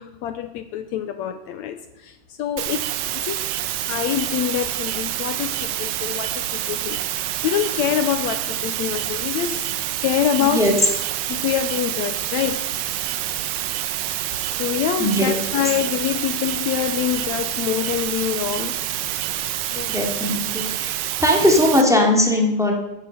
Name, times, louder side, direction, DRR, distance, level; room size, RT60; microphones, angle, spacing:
voice 1, 0.0-9.7 10.0-10.7 11.3-12.7 14.4-18.8 19.7-19.9 20.7-20.8, left 11 dB, 75° left, 9 dB, 1.8 m, -26 dB
sound 1, 2.6-21.8, right 13 dB, 85° right, 2.5 m, -27 dB
voice 2, 10.4-10.7 15.0-15.3 19.9-20.9 21.2-22.7, left 1 dB, ahead, 0 dB, 2.2 m, -19 dB
14.5 x 10.5 x 6.8 m, 0.98 s
omnidirectional pair, 3.7 m